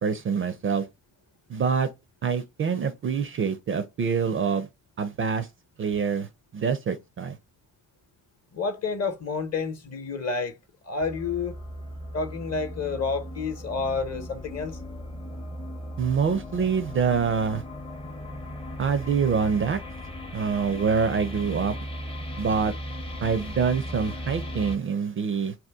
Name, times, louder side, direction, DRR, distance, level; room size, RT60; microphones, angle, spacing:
voice 1, 0.0-0.8 1.5-1.9 2.2-4.7 5.0-5.5 5.8-6.3 6.5-7.3 16.0-17.6 18.8-19.8 20.3-21.8 22.4-22.7 23.2-25.5, right 6 dB, 35° right, 0.4 m, -25 dB
voice 2, 8.5-10.5 10.8-11.5 12.1-14.8, left 4 dB, 40° left, 0.9 m, -29 dB
sound 1, 11.0-24.8, equal, 15° left, 0.6 m, -37 dB
2.8 x 2.2 x 3.4 m
hypercardioid pair, 45°, 40 cm